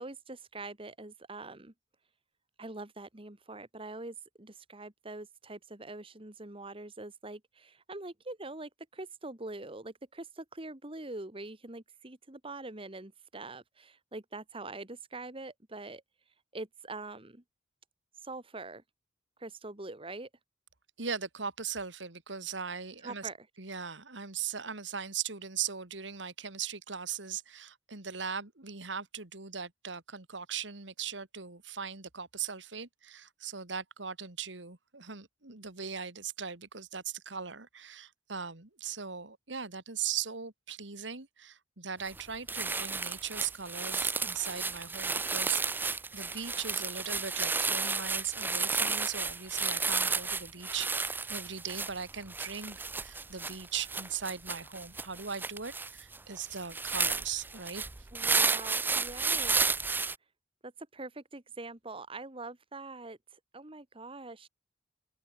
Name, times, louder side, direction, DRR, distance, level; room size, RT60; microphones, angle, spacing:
voice 1, 0.0-1.7 2.6-16.0 16.5-17.4 18.2-18.8 19.4-20.3 23.0-23.4 58.1-59.5 60.6-64.5, right 2 dB, 30° right, 1.9 m, -44 dB
voice 2, 21.0-23.3 23.6-58.1, right 7 dB, 80° right, 2.6 m, -39 dB
sound 1, 42.1-42.2 42.5-60.2, right 4 dB, 10° right, 0.4 m, -32 dB
open air
head